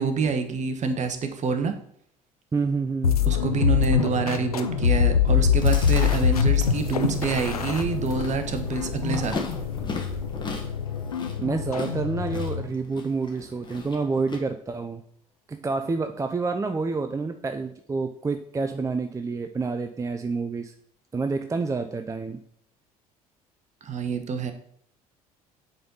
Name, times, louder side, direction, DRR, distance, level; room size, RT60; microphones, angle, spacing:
voice 1, 0.0-1.8 3.3-9.4 23.8-24.5, right 5 dB, 40° right, 8 dB, 1.2 m, -27 dB
voice 2, 2.5-3.2 11.4-15.0 15.5-20.7 21.1-22.4, right 4 dB, 15° right, 7 dB, 0.5 m, -28 dB
sound 1, 3.0-12.7, left 7 dB, 90° left, 0.5 m, -24 dB
Chewing mastication, 5.3-14.4, left 3 dB, 25° left, 1.7 m, -39 dB
sound 2, 5.5-11.0, left 1 dB, ahead, 2.6 m, -41 dB
7.7 x 4.1 x 5.3 m, 0.66 s
figure-of-eight pair, 55°, 19 cm